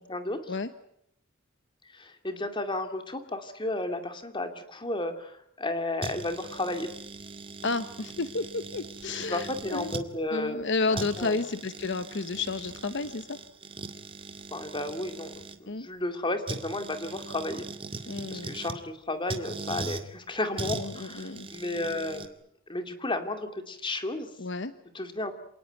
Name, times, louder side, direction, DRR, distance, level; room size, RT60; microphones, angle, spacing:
voice 1, 0.1-0.6 1.8-6.9 9.3-10.6 10.9-11.4 14.5-17.6 18.3-22.3 22.7-24.3 24.9-25.3, left 2 dB, 25° left, 7 dB, 2.5 m, -33 dB
sound 1, 6.0-10.1 10.6-10.7 10.9-15.6 16.5-18.8 19.3-20.0 20.6-22.3, right 3 dB, 25° right, 1.9 m, -40 dB
voice 2, 7.6-9.9 10.3-13.4 15.7-15.9 18.0-18.6 20.5-21.5 24.4-24.7, left 3 dB, 60° left, 12 dB, 1.0 m, -31 dB
27.5 x 19.0 x 9.1 m, 0.75 s
head